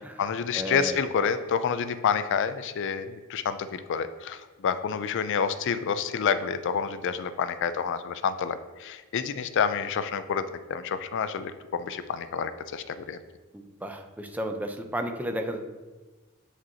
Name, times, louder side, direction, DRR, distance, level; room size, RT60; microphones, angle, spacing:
voice 1, 0.0-13.2, left 6 dB, 55° left, 12 dB, 0.4 m, -28 dB
voice 2, 0.5-1.0 13.5-15.6, equal, 5° right, 5 dB, 0.4 m, -33 dB
7.5 x 5.1 x 2.8 m, 1.2 s
head